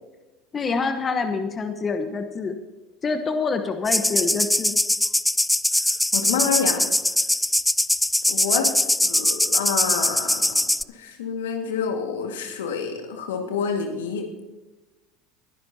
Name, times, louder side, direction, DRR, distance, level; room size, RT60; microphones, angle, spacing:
voice 1, 0.5-2.6 3.0-4.8, left 4 dB, 30° left, 7 dB, 1.1 m, -26 dB
sound 1, 3.9-10.8, left 1 dB, 5° left, 0.3 m, -22 dB
voice 2, 6.1-6.9 8.3-10.6 10.9-14.2, left 6 dB, 80° left, 3 dB, 1.9 m, -28 dB
21.5 x 10.5 x 2.9 m, 1.1 s
hypercardioid pair, 80°, 0 cm